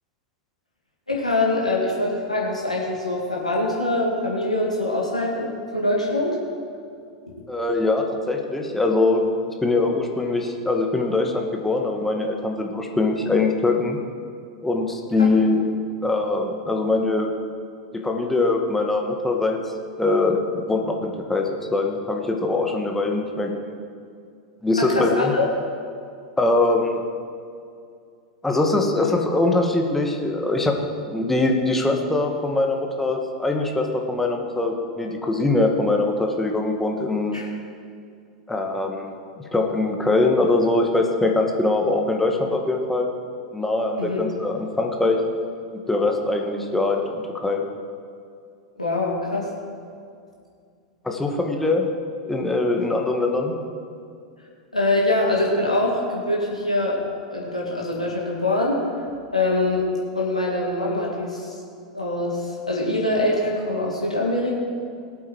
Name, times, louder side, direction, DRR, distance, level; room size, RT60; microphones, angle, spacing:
voice 1, 1.1-6.4 15.2-15.3 24.8-25.4 37.3-37.5 44.0-44.2 48.8-49.5 54.7-57.0 57.3-58.8 59.3-59.9 60.1-61.6 61.9-64.5, left 2 dB, 90° left, -3 dB, 2.1 m, -24 dB
voice 2, 7.5-9.2 9.6-14.0 14.6-15.7 16.0-17.3 17.9-19.6 20.0-23.8 24.6-25.3 26.4-27.0 28.4-37.4 38.5-39.1 39.5-43.1 43.5-45.2 45.7-47.6 51.0-51.9 52.2-53.5, left 2 dB, 5° left, 2 dB, 1.7 m, -22 dB
18.5 x 8.3 x 4.6 m, 2.3 s
figure-of-eight pair, 90°, 4 cm